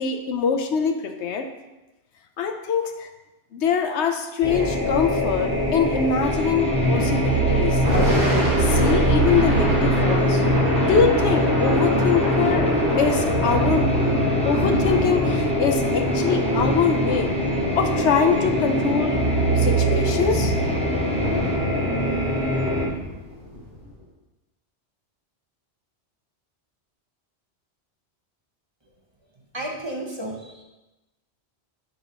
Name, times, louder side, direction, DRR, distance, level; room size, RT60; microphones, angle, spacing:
voice 1, 0.0-1.5 2.4-3.1 3.5-7.8 8.6-10.5 10.8-12.7 13.0-14.0 14.4-17.3 17.8-19.2 19.6-20.5, left 6 dB, 80° left, 6 dB, 1.0 m, -23 dB
sound 1, 4.4-22.8, equal, 65° right, 3.0 m, -22 dB
sound 2, 6.2-21.6, left 1 dB, 10° left, 0.3 m, -38 dB
Thunder / Rain, 7.7-23.9, equal, 90° right, 2.2 m, -28 dB
voice 2, 29.5-30.6, right 1 dB, 25° right, -1 dB, 1.0 m, -32 dB
10.5 x 5.3 x 3.0 m, 1.0 s
omnidirectional pair, 1.1 m